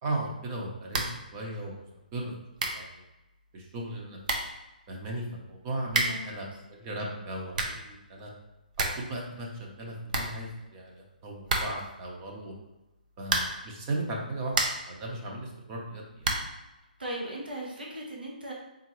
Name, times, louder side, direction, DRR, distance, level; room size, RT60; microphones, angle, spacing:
voice 1, 0.0-1.8 2.1-2.3 2.7-3.0 3.5-4.2 4.9-8.3 8.8-12.5 13.2-14.5 14.9-16.3, right 1 dB, 30° right, -1 dB, 0.9 m, -36 dB
sound 1, 0.9-1.3 1.5-1.6 2.3-2.4 2.6-2.9 3.9-4.0 4.2-4.6 5.9-6.3 7.3-7.9 8.3-8.4 8.6-9.1 9.4-9.5 9.7-9.8 10.1-10.9 11.5-12.0 13.2-13.7 14.2-15.0 16.2-16.6, right 3 dB, 55° right, 0.7 m, -30 dB
voice 2, 6.0-6.6 7.1-7.3 17.0-18.5, right 1 dB, 85° right, -3 dB, 1.2 m, -38 dB
3.9 x 3.6 x 3.0 m, 0.99 s
figure-of-eight pair, 135°, 5 cm